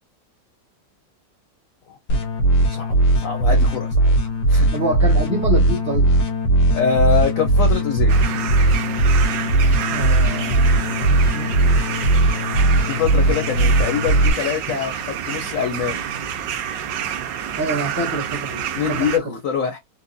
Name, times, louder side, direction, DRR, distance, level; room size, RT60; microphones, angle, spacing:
sound 1, 2.1-14.3, right 2 dB, 90° left, 1.6 m, -18 dB
voice 1, 3.2-4.1 4.5-4.7 6.7-8.1 12.9-16.1 18.7-19.8, left 7 dB, 60° left, 1.0 m, -24 dB
voice 2, 4.7-6.1 9.9-11.6 17.6-19.4, right 1 dB, 15° right, 0.7 m, -27 dB
sound 2, 8.1-19.2, right 9 dB, 85° right, 1.3 m, -28 dB
4.3 x 2.2 x 2.6 m
omnidirectional pair, 1.9 m